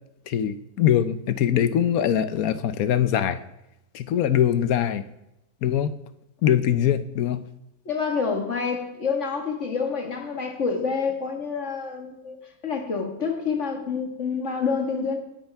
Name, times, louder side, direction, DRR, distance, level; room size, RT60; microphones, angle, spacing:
voice 1, 0.3-3.4 3.9-5.1 5.6-5.9 6.4-7.4, left 10 dB, 75° left, 13 dB, 1.1 m, -22 dB
voice 2, 7.9-12.4 12.6-15.2, left 5 dB, 50° left, 3 dB, 2.1 m, -27 dB
18.0 x 10.0 x 3.5 m, 0.88 s
omnidirectional pair, 1.6 m